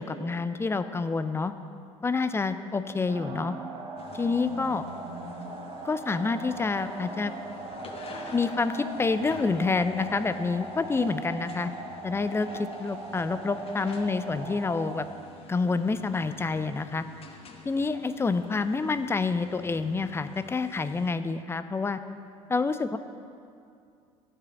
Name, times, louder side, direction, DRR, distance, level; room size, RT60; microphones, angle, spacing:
voice 1, 0.0-1.5 2.0-3.5 4.1-4.8 5.8-7.3 8.3-11.7 12.0-15.1 15.5-17.0 17.6-22.0 22.5-23.0, left 4 dB, 15° left, 11 dB, 0.4 m, -28 dB
sound 1, 3.1-15.1, right 3 dB, 30° right, 1.2 m, -40 dB
sound 2, 4.0-21.1, left 4 dB, 35° left, 1.1 m, -49 dB
12.5 x 4.8 x 6.0 m, 2.4 s
figure-of-eight pair, 60°, 18 cm